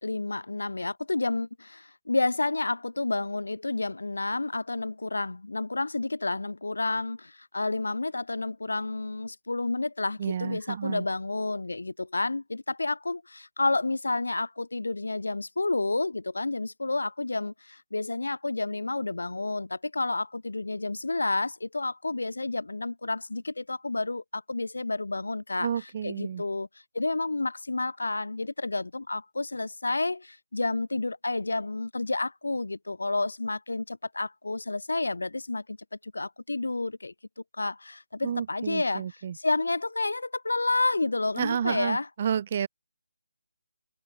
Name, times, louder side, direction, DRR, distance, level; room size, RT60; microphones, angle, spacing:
voice 1, 0.0-26.7 26.9-35.8 36.0-37.1 37.6-42.1, left 2 dB, 85° left, 0.6 m, -30 dB
voice 2, 10.2-11.0 25.6-26.4 38.2-39.4 41.4-42.7, right 8 dB, 35° right, 0.5 m, -30 dB
figure-of-eight pair, 160°, 0 cm